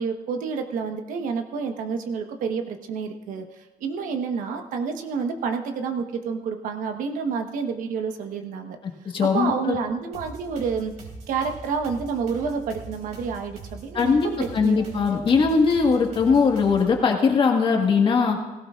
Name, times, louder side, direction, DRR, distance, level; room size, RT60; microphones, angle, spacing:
voice 1, 0.0-3.4 3.8-8.8 9.2-10.9 11.3-15.2, right 5 dB, 80° right, 5 dB, 1.2 m, -29 dB
voice 2, 9.1-9.8 13.9-14.3 14.5-18.4, left 5 dB, 40° left, 2 dB, 1.6 m, -20 dB
sound 1, 10.1-17.0, right 3 dB, 55° right, 3.4 m, -42 dB
17.5 x 16.5 x 2.5 m, 1.1 s
cardioid pair, 165°, 14 cm